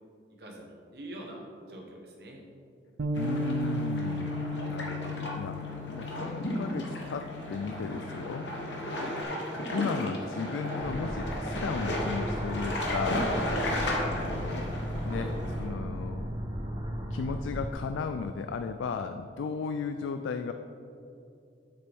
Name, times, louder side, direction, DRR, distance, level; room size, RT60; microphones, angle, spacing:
voice 1, 0.4-2.5 8.8-9.2, right 1 dB, 55° right, -1 dB, 1.3 m, -44 dB
Bass guitar, 3.0-9.2, left 1 dB, 80° right, 0.5 m, -36 dB
voice 2, 3.1-4.4 4.7-8.5 9.7-13.4 14.0-14.7 15.0-16.3 17.1-20.5, left 5 dB, 90° left, 8 dB, 0.3 m, -35 dB
sound 1, 3.1-15.7, left 1 dB, 70° left, 1.1 m, -34 dB
sound 2, 10.8-17.7, equal, 25° right, 1.0 m, -35 dB
7.7 x 6.7 x 3.5 m, 2.6 s
head